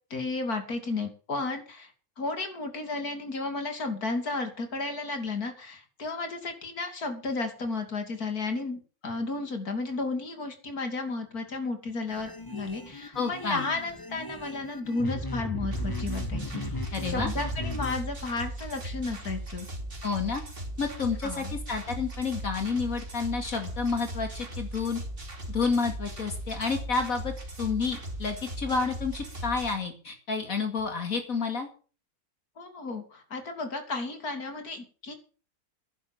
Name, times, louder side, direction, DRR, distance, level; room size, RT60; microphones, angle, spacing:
voice 1, 0.1-1.9 2.2-19.7 21.2-21.5 32.6-35.1, left 3 dB, 80° left, 6 dB, 3.3 m, -33 dB
sound 1, 12.1-18.0, left 1 dB, 15° left, 1.5 m, -36 dB
voice 2, 13.1-13.7 16.9-17.3 20.0-20.4 20.8-25.0 25.5-27.3 27.6-31.7, left 4 dB, 65° left, 5 dB, 2.6 m, -30 dB
sound 2, 15.7-29.8, right 1 dB, 35° right, 3.0 m, -38 dB
11.0 x 10.0 x 7.5 m, 0.38 s
omnidirectional pair, 1.6 m